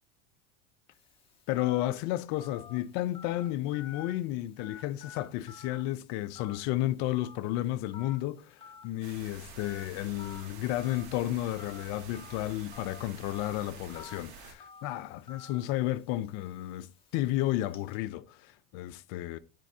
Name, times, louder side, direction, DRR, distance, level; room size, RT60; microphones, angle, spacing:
Telephone, 0.9-18.0, left 7 dB, 15° left, 1.4 m, -52 dB
voice 1, 1.5-19.4, left 15 dB, 55° left, 0.6 m, -32 dB
sound 1, 9.0-14.5, right 5 dB, 80° right, 1.7 m, -49 dB
10.0 x 3.5 x 2.8 m
supercardioid pair, 115°, 32 cm